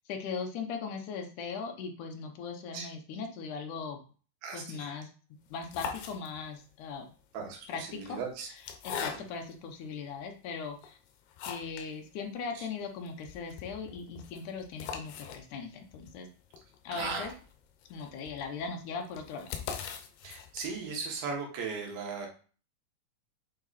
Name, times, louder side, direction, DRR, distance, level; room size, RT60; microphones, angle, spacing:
voice 1, 0.1-4.0 4.5-5.1 5.5-7.1 7.7-8.2 8.8-11.0 11.4-16.3 16.8-17.3 17.9-19.6, left 5 dB, 70° left, 4 dB, 2.1 m, -39 dB
voice 2, 4.4-4.9 7.3-8.5 9.0-9.2 12.5-12.7 16.9-17.3 20.2-22.3, right 5 dB, 75° right, 0 dB, 3.3 m, -37 dB
sound 1, 5.5-6.7 7.5-9.6 10.2-10.3 10.8-11.9 12.2-12.3 12.6-12.7 13.1-20.9, left 7 dB, 85° left, 2.8 m, -42 dB
8.3 x 3.9 x 4.1 m, 0.40 s
omnidirectional pair, 4.3 m